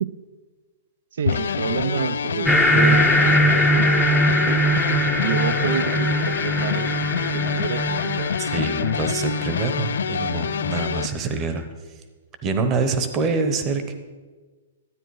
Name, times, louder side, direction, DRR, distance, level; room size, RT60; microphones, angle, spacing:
voice 1, 1.2-4.6 5.2-6.9 7.2-8.4, right 8 dB, 70° right, 13 dB, 0.5 m, -29 dB
sound 1, 1.3-11.1, left 7 dB, 85° left, 0.3 m, -26 dB
sound 2, 2.5-11.4, equal, ahead, 0.6 m, -22 dB
voice 2, 8.4-11.6 12.4-13.9, right 4 dB, 20° right, 8 dB, 0.9 m, -26 dB
13.0 x 9.0 x 4.8 m, 1.3 s
hypercardioid pair, 165°, 0 cm